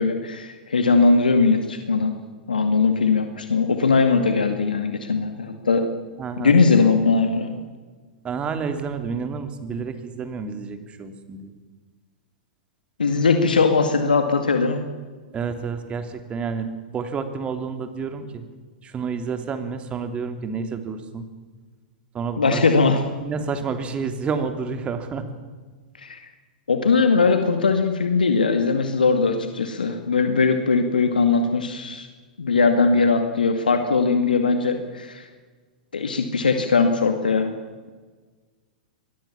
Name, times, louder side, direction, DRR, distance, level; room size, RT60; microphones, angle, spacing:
voice 1, 0.0-2.2 2.5-5.9 6.4-7.5 13.0-14.8 22.4-23.0 26.0-26.3 26.7-32.1 32.4-35.3 35.9-37.5, left 4 dB, 85° left, 6 dB, 2.2 m, -20 dB
voice 2, 6.2-6.5 8.2-11.5 15.3-18.4 18.8-21.3 22.1-22.6 23.2-25.2, right 5 dB, 25° right, 8 dB, 3.2 m, -29 dB
24.5 x 20.5 x 7.4 m, 1.4 s
hypercardioid pair, 105°, 5 cm